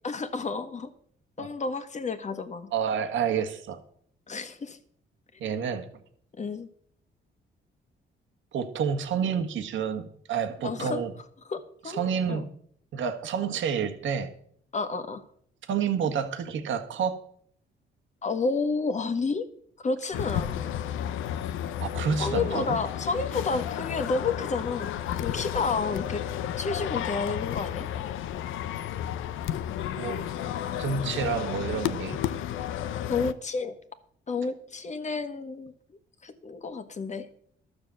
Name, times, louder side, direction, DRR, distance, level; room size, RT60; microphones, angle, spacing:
voice 1, 0.0-0.9 1.4-2.7 4.3-4.8 6.4-6.7 10.6-11.0 11.5-12.4 14.7-15.2 18.2-19.5 19.8-20.6 22.2-24.9 25.2-26.2 26.6-27.9 33.1-33.8 34.3-35.7 36.2-37.3, left 4 dB, 35° left, 9 dB, 1.4 m, -30 dB
voice 2, 2.7-3.8 5.4-5.9 8.5-11.1 11.9-12.5 12.9-14.3 15.7-17.2 21.8-22.8 29.9-30.3 30.8-32.2, right 7 dB, 75° right, 7 dB, 1.5 m, -29 dB
sound 1, 20.1-33.3, left 10 dB, 85° left, 0.7 m, -32 dB
12.0 x 6.6 x 7.5 m, 0.63 s
cardioid pair, 90°, 20 cm